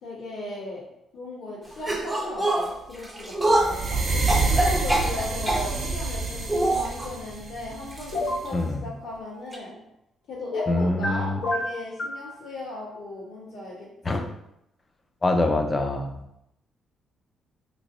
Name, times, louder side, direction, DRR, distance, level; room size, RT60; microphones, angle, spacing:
voice 1, 0.0-0.8 1.1-4.0 4.4-9.8 10.3-14.3, left 1 dB, 90° left, -12 dB, 1.3 m, -37 dB
sound 1, 1.8-5.7 6.5-7.1 7.9-8.2 8.5-8.6 9.5-9.6, right 1 dB, 15° right, 0.7 m, -25 dB
sound 2, 3.5-8.6, right 3 dB, 55° right, 0.7 m, -28 dB
sound 3, 8.1-8.5 10.5-11.1 11.4-12.2, left 2 dB, 65° left, 0.8 m, -28 dB
voice 2, 8.5-8.8 10.7-11.4 14.0-14.3 15.2-16.1, left 2 dB, 25° left, 5 dB, 0.5 m, -24 dB
3.6 x 3.0 x 2.6 m, 0.81 s
cardioid pair, 90°, 0 cm